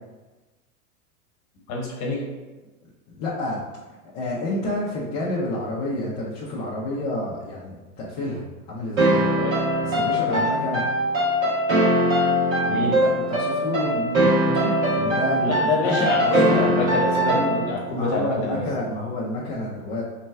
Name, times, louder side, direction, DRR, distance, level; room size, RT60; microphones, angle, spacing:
voice 1, 1.7-2.2 9.3-9.6 10.3-10.4 12.7-13.0 15.4-18.6, left 3 dB, 40° left, -1 dB, 1.1 m, -26 dB
voice 2, 3.1-3.6 4.1-9.3 9.8-10.8 13.0-16.6 17.3-17.5 17.9-20.0, left 1 dB, 20° left, -7 dB, 0.4 m, -29 dB
sound 1, 9.0-17.9, right 1 dB, 55° right, 1.4 m, -21 dB
3.2 x 2.2 x 4.2 m, 1.2 s
supercardioid pair, 135°, 45 cm